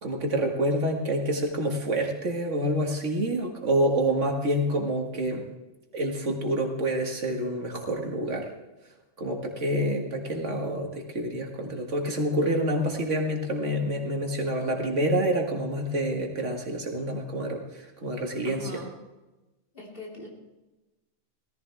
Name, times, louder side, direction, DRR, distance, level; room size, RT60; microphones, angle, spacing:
voice 1, 0.0-5.4 5.9-8.5 9.2-17.6 18.0-18.6, right 1 dB, 75° right, 1 dB, 2.2 m, -27 dB
voice 2, 18.4-19.0 19.7-20.3, left 1 dB, 45° left, -3 dB, 3.5 m, -41 dB
17.5 x 14.5 x 3.5 m, 1.1 s
omnidirectional pair, 1.3 m